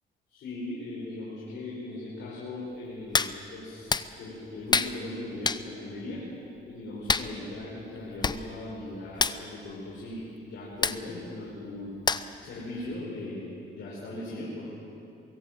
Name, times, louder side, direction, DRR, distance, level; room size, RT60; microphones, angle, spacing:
voice 1, 0.3-6.3 6.7-11.9 12.4-14.7, left 2 dB, 70° left, -6 dB, 5.5 m, -39 dB
Hands, 3.1-3.3 3.9-4.1 4.7-4.9 5.4-5.6 7.1-7.3 8.0-8.4 8.7-8.8 9.1-9.4 10.8-11.0 12.1-12.4 12.9-13.0, left 4 dB, 20° left, 0.7 m, -26 dB
23.5 x 16.5 x 7.6 m, 2.8 s
cardioid pair, 90°, 20 cm